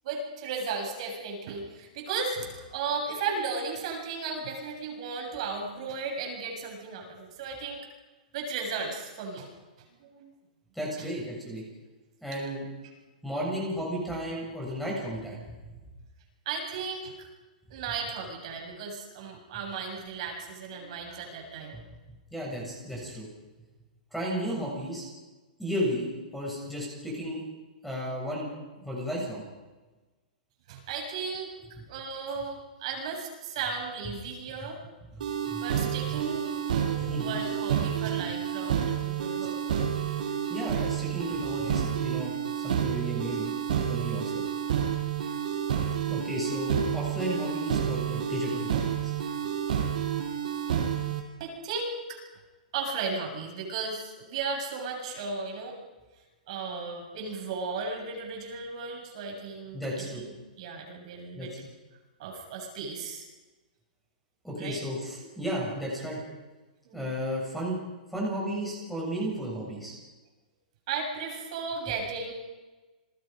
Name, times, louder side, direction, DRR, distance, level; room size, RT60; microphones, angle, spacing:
voice 1, 0.0-7.8 8.3-9.5 9.9-10.3 11.0-11.1 16.5-17.3 17.7-21.8 30.7-31.5 31.9-34.8 35.6-40.1 51.4-52.2 52.7-55.8 56.5-61.5 62.2-63.3 64.6-64.8 66.9-67.1 70.9-72.3, right 4 dB, 45° right, 1 dB, 7.3 m, -35 dB
voice 2, 10.7-11.6 12.2-12.7 13.2-15.4 22.3-23.3 24.1-25.1 25.6-26.1 26.3-27.4 27.8-28.5 28.8-29.4 35.5-35.6 36.9-37.3 40.5-43.5 43.9-44.4 46.1-49.1 59.7-60.2 61.3-61.6 64.4-66.2 66.9-67.8 68.1-69.9, equal, ahead, -3 dB, 7.3 m, -33 dB
sound 1, 35.2-51.2, right 9 dB, 65° right, 6.2 m, -30 dB
30.0 x 21.5 x 5.3 m, 1.2 s
hypercardioid pair, 165°, 5 cm